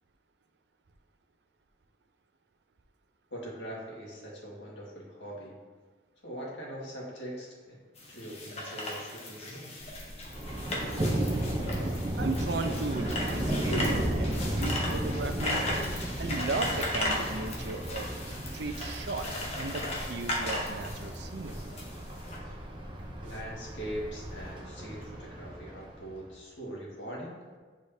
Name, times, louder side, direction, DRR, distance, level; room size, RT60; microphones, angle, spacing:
voice 1, 3.3-5.6 6.2-7.8 8.1-10.0 23.2-27.4, equal, 85° left, -4 dB, 1.8 m, -42 dB
sound 1, 8.0-22.4, left 1 dB, 35° left, 1.0 m, -36 dB
sound 2, 9.8-24.5, equal, 60° left, 1.9 m, -47 dB
Thunder, 10.3-26.2, right 1 dB, 25° right, 0.7 m, -34 dB
voice 2, 12.2-15.6 16.2-21.6, right 3 dB, 70° right, 7 dB, 0.5 m, -36 dB
8.4 x 4.8 x 2.7 m, 1.5 s
head